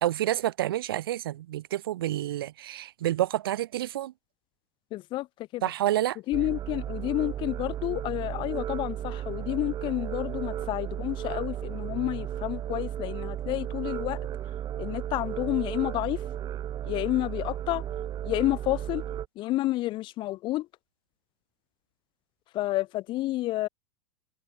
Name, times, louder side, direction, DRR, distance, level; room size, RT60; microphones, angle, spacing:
voice 1, 0.0-4.1 5.6-6.2, right 13 dB, 70° right, 0.5 m, -28 dB
voice 2, 4.9-5.3 5.5-5.6 6.3-14.2 14.8-16.2 16.8-17.8 18.2-19.0 19.4-20.7 22.5-23.7, left 17 dB, 40° left, 1.0 m, -30 dB
sound 1, 6.3-19.3, right 11 dB, 35° right, 1.7 m, -34 dB
hypercardioid pair, 90°, 12 cm